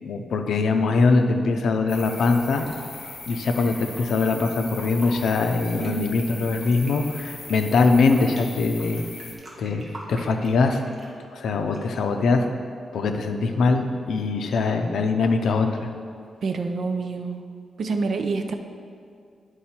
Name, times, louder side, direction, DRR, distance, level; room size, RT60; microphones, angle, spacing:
voice 1, 0.0-2.6 3.3-9.0 9.6-9.8 10.1-10.8 11.3-12.5 12.9-15.9, left 4 dB, 75° left, 5 dB, 0.6 m, -22 dB
sound 1, 1.9-9.3, left 4 dB, 55° left, 1.2 m, -40 dB
Fill (with liquid), 2.0-4.0 4.6-5.2 5.6-8.4 8.8-11.2 11.7-12.1, right 1 dB, 25° right, 1.2 m, -44 dB
voice 2, 5.8-6.1 16.4-17.4 17.8-18.6, right 4 dB, 50° right, 6 dB, 0.5 m, -27 dB
9.9 x 4.7 x 4.4 m, 2.3 s
wide cardioid pair, 170°, 0 cm